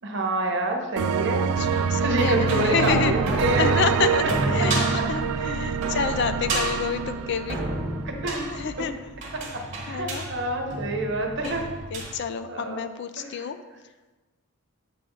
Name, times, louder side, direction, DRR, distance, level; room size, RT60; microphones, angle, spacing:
voice 1, 0.0-1.5 1.9-3.7 4.6-4.9 6.5-6.6 8.0-8.4 8.8-8.9 9.3-11.6 12.5-12.8 13.2-13.5, right 1 dB, 55° right, 2 dB, 1.0 m, -28 dB
sound 1, 1.0-8.6, right 7 dB, 80° right, 0.3 m, -26 dB
voice 2, 1.6-3.1 3.6-4.8 5.1-7.6 8.5-8.9 9.9-10.3 11.4-11.6 11.9-13.6, left 6 dB, 50° left, 10 dB, 0.3 m, -28 dB
sound 2, 2.0-12.1, right 2 dB, 35° right, 1.3 m, -31 dB
7.6 x 3.4 x 5.3 m, 1.2 s
head